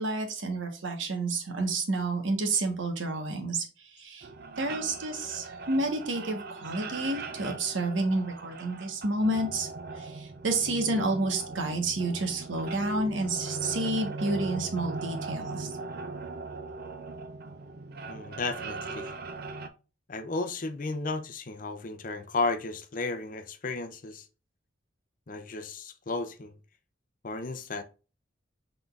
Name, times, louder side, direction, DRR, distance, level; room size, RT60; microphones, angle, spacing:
voice 1, 0.0-4.3 4.6-9.7 9.9-15.7, right 2 dB, 90° right, 1.2 m, -30 dB
sound 1, 4.2-19.7, right 3 dB, 55° right, 0.5 m, -39 dB
voice 2, 18.1-19.1 20.1-24.3 25.3-26.5 27.2-27.8, left 3 dB, 45° left, 0.5 m, -33 dB
5.8 x 3.8 x 2.4 m
head